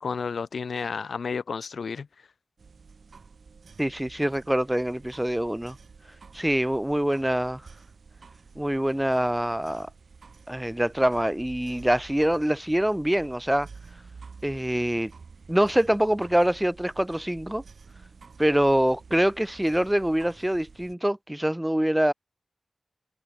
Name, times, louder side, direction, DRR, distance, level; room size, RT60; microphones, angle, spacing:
voice 1, 0.0-2.1, left 5 dB, 90° left, 0.5 m, -31 dB
sound 1, 2.6-20.9, right 5 dB, 70° right, 2.8 m, -50 dB
voice 2, 3.8-5.8 6.3-7.6 8.6-9.9 10.5-13.7 14.4-15.1 15.5-17.6 18.4-22.1, right 1 dB, 10° right, 1.0 m, -24 dB
wide cardioid pair, 110°, 0 cm